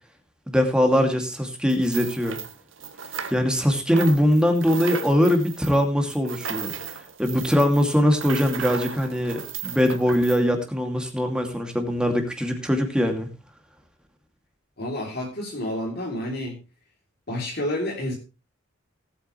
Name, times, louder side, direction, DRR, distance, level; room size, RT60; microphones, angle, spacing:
voice 1, 0.5-2.4 3.3-13.3, equal, 5° right, 3 dB, 2.5 m, -22 dB
sound 1, 1.7-3.6 3.9-10.4, right 7 dB, 75° right, 1.6 m, -36 dB
voice 2, 14.8-16.6 17.3-18.2, left 1 dB, 50° left, -2 dB, 3.4 m, -29 dB
18.5 x 8.8 x 3.3 m, 0.29 s
head